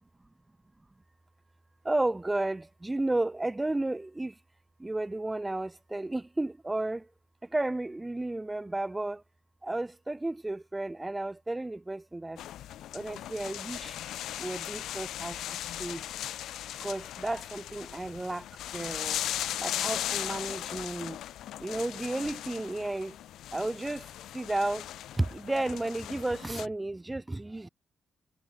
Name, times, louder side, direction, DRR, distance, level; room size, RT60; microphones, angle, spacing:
voice 1, 1.8-4.3 4.8-7.1 7.5-9.2 9.6-12.4 12.9-13.9 14.4-15.4 15.8-16.0 16.8-18.5 18.7-19.2 19.6-21.2 21.6-23.1 23.5-24.1 24.3-24.8 25.1-27.7, right 2 dB, 20° right, 0.4 m, -32 dB
sound 1, 12.4-26.7, left 12 dB, 90° left, 1.4 m, -38 dB
cardioid pair, 65°, 0 cm